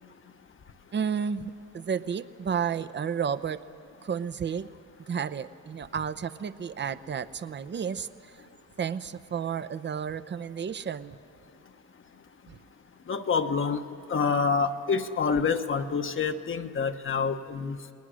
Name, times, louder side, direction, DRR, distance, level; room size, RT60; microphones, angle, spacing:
voice 1, 0.9-3.6 4.0-4.7 5.1-8.3 8.8-11.2 12.5-12.6, right 7 dB, 35° right, 14 dB, 0.8 m, -32 dB
voice 2, 13.1-13.8 14.1-17.8, left 5 dB, 40° left, 7 dB, 1.1 m, -27 dB
28.5 x 20.0 x 6.3 m, 2.6 s
cardioid pair, 90°, 30 cm